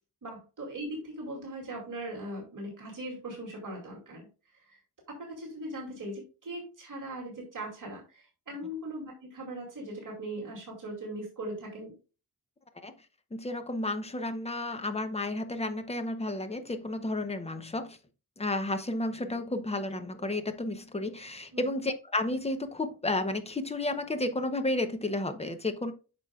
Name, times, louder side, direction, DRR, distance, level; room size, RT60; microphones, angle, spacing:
voice 1, 0.2-4.8 5.1-12.0 21.5-21.7, right 1 dB, 50° right, 2.5 m, -40 dB
voice 2, 13.3-18.0 18.4-25.9, left 2 dB, 15° left, 0.7 m, -32 dB
9.1 x 6.1 x 2.3 m
wide cardioid pair, 165°, 39 cm